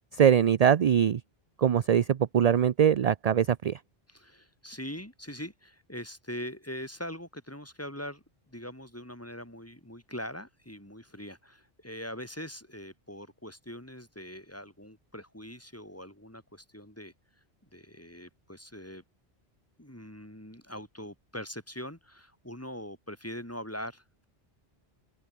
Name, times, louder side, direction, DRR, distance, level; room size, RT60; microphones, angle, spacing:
voice 1, 0.1-1.2 1.6-3.8, right 8 dB, 50° right, 0.5 m, -22 dB
voice 2, 4.1-17.1 17.7-19.0 19.8-24.3, equal, 15° left, 4.1 m, -42 dB
open air
omnidirectional pair, 1.1 m